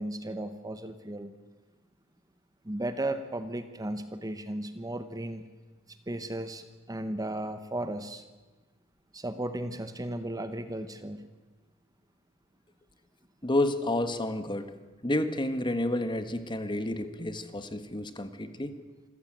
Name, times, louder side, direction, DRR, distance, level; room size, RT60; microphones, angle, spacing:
voice 1, 0.0-1.3 2.6-5.4 5.9-8.2 9.1-11.3, right 1 dB, 15° right, 10 dB, 1.1 m, -35 dB
voice 2, 13.4-14.7 15.0-18.7, left 1 dB, 20° left, 10 dB, 1.5 m, -30 dB
26.5 x 15.0 x 8.9 m, 1.3 s
head